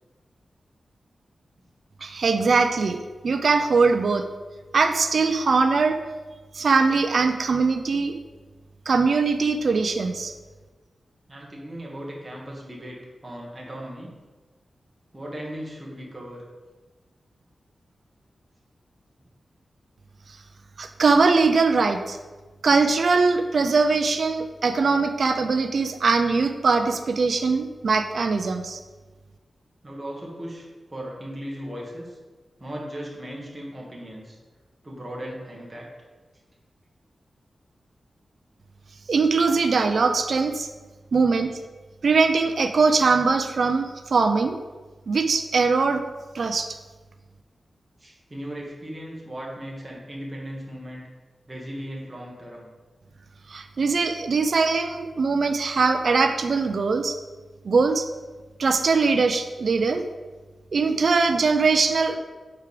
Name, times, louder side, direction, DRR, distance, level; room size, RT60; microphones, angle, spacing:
voice 1, 2.0-3.0 3.2-4.3 4.7-6.0 6.5-8.2 8.9-10.3 20.8-22.2 22.6-28.8 39.1-40.7 41.1-41.5 42.0-44.6 45.1-46.0 46.3-46.8 53.5-57.2 57.6-58.1 58.6-60.0 60.7-62.2, right 4 dB, 55° right, 7 dB, 0.5 m, -21 dB
voice 2, 11.3-14.1 15.1-16.4 29.8-32.2 32.6-34.4 34.8-35.9 48.0-51.0 51.5-52.7, equal, 15° right, -3 dB, 1.5 m, -37 dB
8.1 x 4.7 x 5.1 m, 1.3 s
wide cardioid pair, 175°, 0 cm